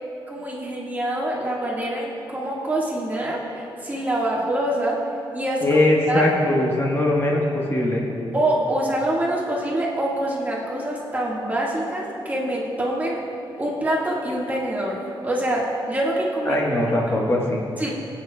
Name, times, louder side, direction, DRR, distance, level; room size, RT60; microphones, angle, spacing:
voice 1, 0.3-5.0 5.3-5.6 6.1-6.2 8.3-13.2 13.6-16.6 17.8-17.9, right 1 dB, 20° right, -4 dB, 1.7 m, -25 dB
voice 2, 5.6-8.1 16.4-17.6, left 1 dB, 25° left, -3 dB, 1.3 m, -21 dB
20.5 x 8.7 x 2.3 m, 2.7 s
wide cardioid pair, 125°, 9 cm